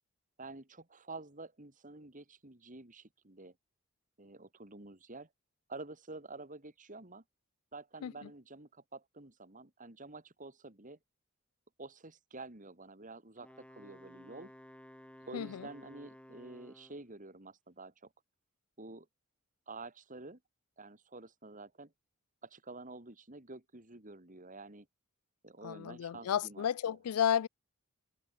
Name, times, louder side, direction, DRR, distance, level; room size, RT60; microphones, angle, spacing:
voice 1, 0.4-3.6 4.2-5.3 5.7-7.2 7.7-11.0 11.8-14.5 15.3-18.1 18.8-19.1 19.7-20.4 20.8-21.9 22.4-24.9 25.4-27.0, right 3 dB, 35° right, 2.7 m, -49 dB
Wind instrument woodwind instrument, 13.4-17.1, equal, 5° left, 1.7 m, -55 dB
voice 2, 15.3-15.7 25.6-27.5, left 9 dB, 85° left, 0.4 m, -32 dB
head